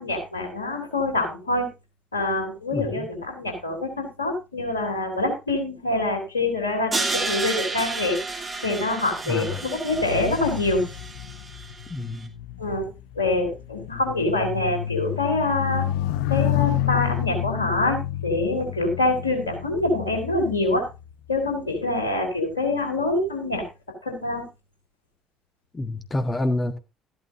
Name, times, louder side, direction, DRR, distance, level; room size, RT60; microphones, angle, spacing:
voice 1, 0.0-1.7 2.1-8.2 8.6-10.8 12.6-12.9 13.1-15.9 16.3-20.9 21.3-23.6 24.0-24.4, left 2 dB, 85° left, 3.4 m, -25 dB
voice 2, 2.7-3.1 9.3-9.6 11.9-12.3 25.7-26.8, left 2 dB, 20° left, 1.4 m, -28 dB
Crash cymbal, 6.9-12.0, right 3 dB, 25° right, 3.0 m, -31 dB
sound 1, 9.9-21.5 22.2-22.5, left 12 dB, 65° left, 0.6 m, -30 dB
13.5 x 12.0 x 2.7 m
figure-of-eight pair, 55°, 0 cm